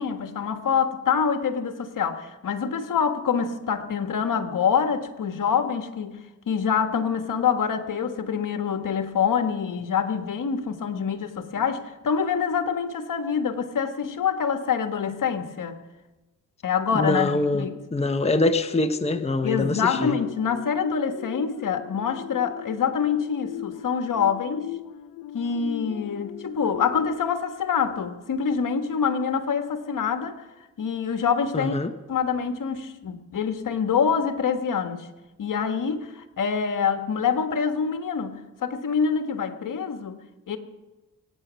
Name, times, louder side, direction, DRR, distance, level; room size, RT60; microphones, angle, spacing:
voice 1, 0.0-15.7 16.6-17.8 19.4-24.7 25.3-30.4 30.8-31.8 32.1-35.1 35.4-40.2 40.5-40.6, left 6 dB, 60° left, 8 dB, 1.6 m, -26 dB
voice 2, 16.9-20.2 31.5-31.9, left 2 dB, 20° left, 8 dB, 0.9 m, -24 dB
sound 1, 18.7-28.5 29.0-29.2, left 13 dB, 85° left, 0.7 m, -40 dB
24.0 x 9.3 x 6.3 m, 1.1 s
cardioid pair, 80°, 35 cm